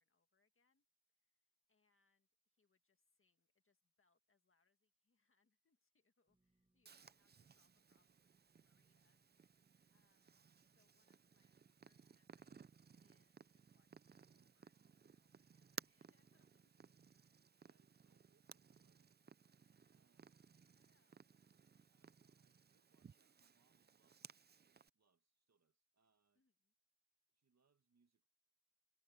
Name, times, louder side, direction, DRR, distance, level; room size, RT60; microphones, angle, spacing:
voice 1, 0.0-9.6 9.9-12.8 13.0-16.9 20.7-21.3 26.4-26.7, left 4 dB, 45° left, 1.9 m, -85 dB
sound 1, 6.3-16.4, right 2 dB, 20° right, 1.2 m, -88 dB
Purr, 6.8-24.9, right 6 dB, 35° right, 0.4 m, -61 dB
voice 2, 17.6-19.1 19.9-20.5 21.9-26.4 27.3-28.3, right 5 dB, 60° right, 1.6 m, -83 dB
wide cardioid pair, 120°, 31 cm